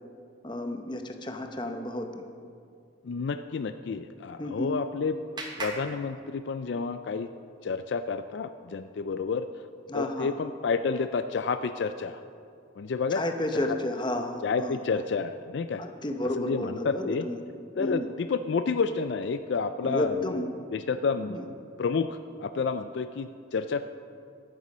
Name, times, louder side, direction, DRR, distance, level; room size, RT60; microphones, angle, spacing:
voice 1, 0.4-2.2 4.4-4.7 9.9-10.3 13.1-14.8 15.8-17.4 17.8-18.1 19.8-20.5 21.3-21.4, left 1 dB, 25° left, 5 dB, 0.8 m, -31 dB
voice 2, 3.0-5.2 5.6-7.3 7.6-9.5 9.9-12.2 12.8-13.2 14.4-15.8 16.4-17.3 17.8-20.2 20.7-21.4 21.8-23.8, left 5 dB, 60° left, 10 dB, 0.4 m, -30 dB
Clapping, 4.2-6.9, right 2 dB, 20° right, 1.2 m, -42 dB
12.5 x 9.6 x 6.2 m, 2.4 s
head